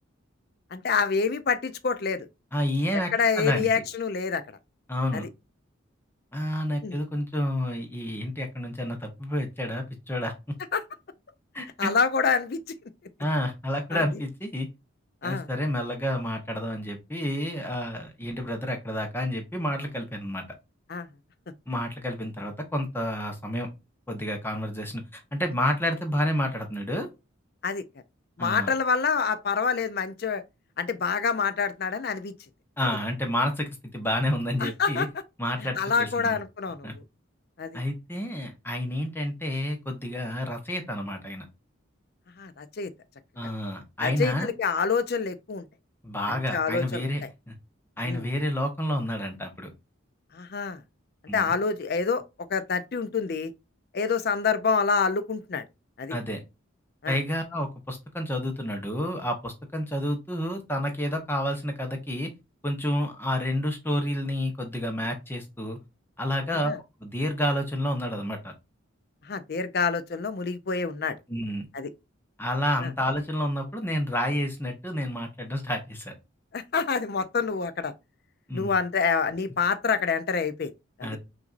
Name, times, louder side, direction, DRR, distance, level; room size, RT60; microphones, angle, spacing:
voice 1, 0.7-2.3 3.1-4.4 5.1-5.3 6.8-7.0 10.7-10.8 11.8-12.6 13.9-14.0 15.2-15.5 20.9-21.1 27.6-27.8 28.4-30.4 30.8-32.3 34.6-35.1 35.6-37.0 37.6-37.8 42.4-42.9 43.4-43.5 44.0-45.6 46.3-47.3 48.0-48.3 50.3-50.8 51.3-52.2 52.5-53.5 53.9-55.6 56.0-56.1 57.0-57.2 66.5-66.8 69.2-71.2 71.7-71.9 72.8-72.9 76.5-77.9 78.5-80.7 81.0-81.1, left 5 dB, 50° left, 0.5 m, -27 dB
voice 2, 2.5-3.1 3.4-3.7 4.9-5.2 6.3-10.6 11.5-11.9 13.2-14.7 15.2-20.4 21.7-23.7 24.1-27.1 28.4-28.7 32.8-35.1 35.4-36.4 36.8-36.9 37.7-41.4 43.4-44.5 46.0-47.5 48.0-49.7 51.3-51.5 56.1-56.4 57.1-62.3 62.6-65.8 66.2-66.7 67.0-68.5 71.3-71.6 72.4-76.1 78.5-78.7 81.0-81.2, equal, 10° left, 0.8 m, -29 dB
5.8 x 2.6 x 2.5 m
head